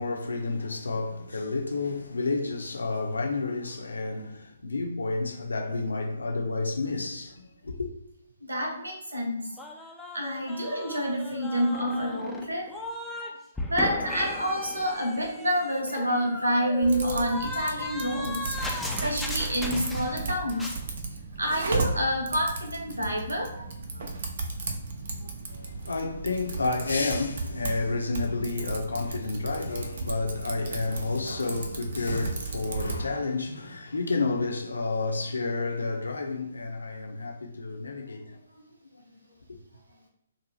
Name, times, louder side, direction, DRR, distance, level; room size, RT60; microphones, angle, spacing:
voice 1, 0.0-7.9 25.5-38.4, left 3 dB, 75° left, 0.6 m, -30 dB
voice 2, 8.4-9.5 10.1-12.8 13.2-13.3 13.7-20.7 21.4-24.0 24.7-24.8 25.2-25.3, equal, 85° right, 0.9 m, -28 dB
sound 1, 9.6-13.3 13.6-20.3 20.5-20.8, left 2 dB, 5° left, 0.4 m, -37 dB
Typing, 16.8-33.1, right 3 dB, 55° right, 0.6 m, -35 dB
2.7 x 2.1 x 3.1 m
figure-of-eight pair, 130°, 0 cm